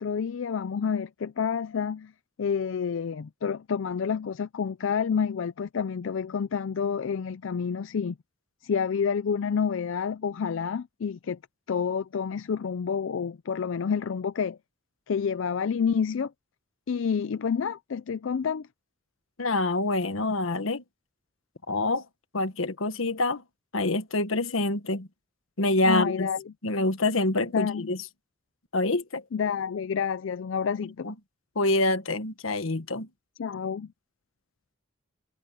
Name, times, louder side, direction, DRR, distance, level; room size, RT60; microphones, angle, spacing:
voice 1, 0.0-2.1 2.4-8.2 8.6-11.4 11.7-14.6 15.1-16.3 16.9-18.7 25.8-26.4 27.5-27.9 29.3-31.1 33.4-33.9, left 6 dB, 70° left, 0.4 m, -29 dB
voice 2, 19.4-20.8 21.7-22.0 22.3-23.4 23.7-25.1 25.6-26.3 26.6-28.0 28.7-29.2 31.0-31.1 31.5-33.1, left 2 dB, 90° left, 1.4 m, -26 dB
head